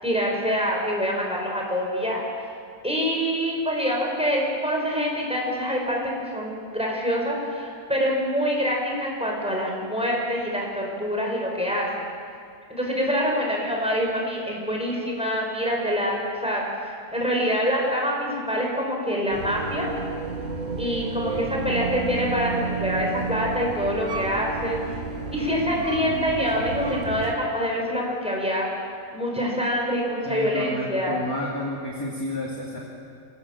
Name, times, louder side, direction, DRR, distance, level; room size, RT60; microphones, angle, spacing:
voice 1, 0.0-2.2 2.8-12.1 12.7-19.9 20.8-24.8 25.3-28.7 29.1-31.2, equal, 5° right, -1 dB, 5.2 m, -25 dB
sound 1, 19.3-27.3, right 4 dB, 60° right, 2.4 m, -31 dB
voice 2, 30.2-32.8, left 1 dB, 15° left, -3 dB, 2.6 m, -31 dB
28.5 x 17.0 x 7.5 m, 2.3 s
omnidirectional pair, 1.5 m